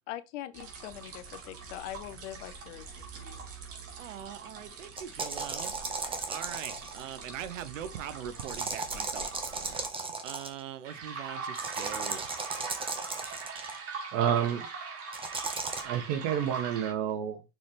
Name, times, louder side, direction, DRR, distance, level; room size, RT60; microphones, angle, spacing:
voice 1, 0.1-2.8 3.1-3.4, left 13 dB, 65° left, 1.0 m, -42 dB
sound 1, 0.5-9.8 10.8-16.9, right 4 dB, 40° right, 2.6 m, -43 dB
voice 2, 4.0-12.3, right 10 dB, 75° right, 1.0 m, -42 dB
sound 2, 5.0-7.1 8.4-10.6 11.6-13.8 15.1-15.8, right 3 dB, 15° right, 1.3 m, -36 dB
voice 3, 14.1-14.7 15.8-17.4, right 9 dB, 55° right, 1.6 m, -29 dB
6.3 x 4.6 x 3.3 m
hypercardioid pair, 100°, 38 cm